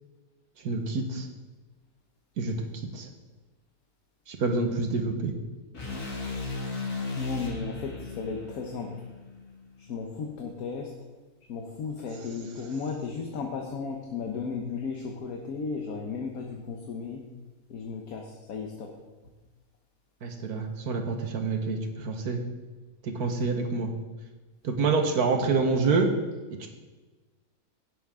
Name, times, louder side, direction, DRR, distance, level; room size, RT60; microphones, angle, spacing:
voice 1, 0.6-1.3 2.4-3.1 4.3-5.3 20.2-22.4 23.0-23.9 24.6-26.1 26.6-26.7, right 4 dB, 85° right, 4 dB, 1.7 m, -27 dB
sound 1, 5.7-9.9, left 3 dB, 90° left, 3.1 m, -36 dB
voice 2, 7.2-9.1 9.8-11.0 11.5-17.2 17.7-18.9, left 5 dB, 70° left, 1 dB, 1.4 m, -35 dB
16.5 x 6.9 x 3.7 m, 1.3 s
omnidirectional pair, 1.6 m